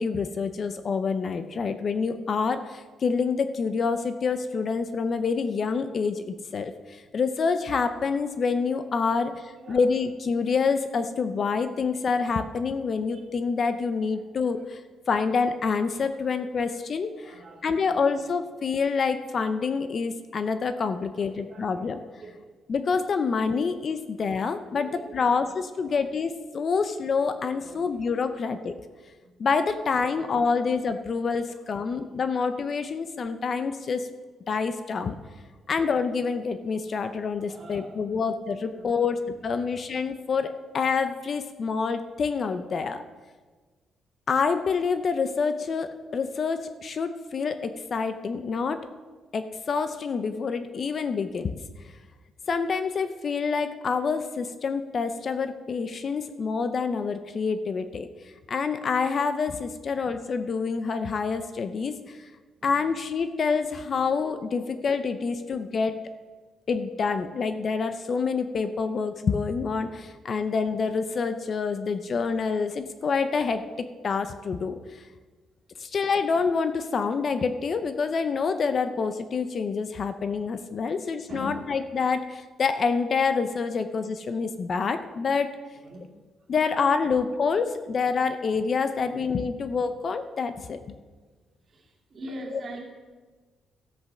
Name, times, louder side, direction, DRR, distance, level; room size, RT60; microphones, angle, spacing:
voice 1, 0.0-14.8 15.1-22.0 22.7-28.7 29.4-34.1 34.5-35.2 35.7-43.0 44.3-48.8 49.3-51.5 52.5-58.1 58.5-62.3 62.6-65.9 66.7-75.0 75.8-85.6 86.5-91.0 92.5-92.6, left 5 dB, 40° left, 10 dB, 0.6 m, -27 dB
voice 2, 9.5-9.8 13.1-13.2 14.1-14.3 14.6-14.7 17.1-18.6 21.0-21.9 22.2-22.6 24.7-26.0 27.5-28.0 28.3-28.4 29.2-29.3 30.0-30.7 31.7-32.0 35.6-35.8 36.9-37.0 37.5-38.2 38.6-39.1 39.5-39.7 62.6-62.9 64.6-64.8 65.4-65.8 80.9-81.0 81.3-81.6 85.8-86.1 86.4-86.5 87.0-87.1 89.0-89.2 91.7-92.8, right 1 dB, 35° right, -1 dB, 2.7 m, -45 dB
13.5 x 8.0 x 6.1 m, 1.4 s
cardioid pair, 140°, 0 cm